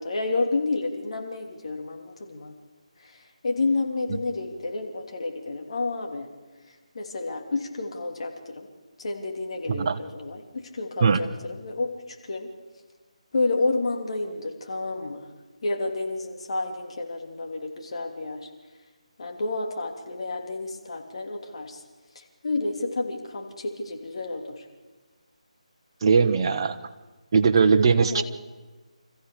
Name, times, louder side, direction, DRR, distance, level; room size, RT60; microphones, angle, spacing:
voice 1, 0.0-2.5 3.0-6.3 6.9-8.7 9.0-12.5 13.3-15.3 15.6-18.5 19.2-21.8 22.1-24.6 28.0-28.2, left 3 dB, 50° left, 3 dB, 3.1 m, -30 dB
voice 2, 9.7-10.0 11.0-11.2 26.0-26.8 27.3-28.2, right 5 dB, 35° right, 7 dB, 1.2 m, -20 dB
26.0 x 15.0 x 7.0 m, 1.3 s
figure-of-eight pair, 155°, 4 cm